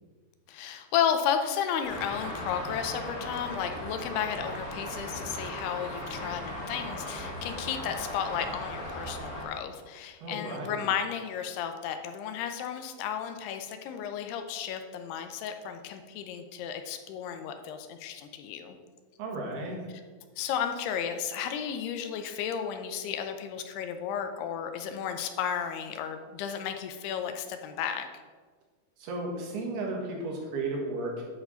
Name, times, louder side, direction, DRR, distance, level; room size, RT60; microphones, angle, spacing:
voice 1, 0.5-18.8 20.4-28.1, left 8 dB, 80° left, 7 dB, 2.6 m, -33 dB
Traffic noise roadway noise, 1.8-9.5, left 1 dB, 30° left, 2.7 m, -38 dB
voice 2, 10.2-10.9 19.2-19.8 29.0-31.2, right 2 dB, 75° right, -1 dB, 3.6 m, -34 dB
10.5 x 4.3 x 5.6 m, 1.5 s
omnidirectional pair, 4.7 m